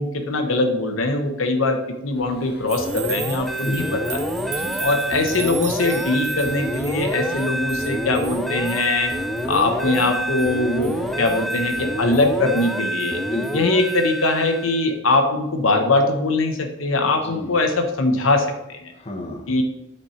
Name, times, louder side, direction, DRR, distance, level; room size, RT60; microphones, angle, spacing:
voice 1, 0.0-4.2 4.8-9.1 9.5-13.2 13.5-18.9 19.5-19.6, left 2 dB, 85° left, 5 dB, 0.9 m, -22 dB
sound 1, 2.1-12.6, equal, 55° left, 1.3 m, -41 dB
sound 2, 2.7-13.6 13.9-14.0, right 8 dB, 35° right, 0.8 m, -38 dB
sound 3, 2.8-14.9, equal, ahead, 0.4 m, -27 dB
voice 2, 3.6-4.0 4.4-4.9 13.2-13.7 17.0-17.5 18.9-19.5, left 1 dB, 30° left, 2 dB, 1.0 m, -32 dB
8.3 x 4.4 x 4.3 m, 0.87 s
head